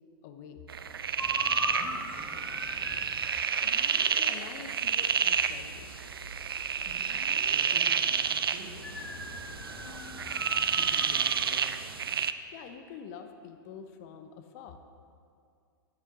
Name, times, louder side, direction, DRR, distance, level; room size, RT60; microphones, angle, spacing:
voice 1, 0.2-0.6 4.2-6.1 12.5-14.8, left 7 dB, 45° left, 7 dB, 0.7 m, -46 dB
sound 1, 0.7-12.3, right 7 dB, 85° right, 0.4 m, -30 dB
sound 2, 1.2-3.2 8.8-11.5, left 1 dB, 10° left, 1.1 m, -39 dB
voice 2, 1.7-2.4 6.8-11.9, right 3 dB, 45° right, 1 dB, 1.5 m, -50 dB
sound 3, 3.6-4.5 5.3-7.9 8.7-10.4, left 2 dB, 90° left, 0.9 m, -50 dB
9.1 x 8.9 x 3.8 m, 2.4 s
hypercardioid pair, 105°, 12 cm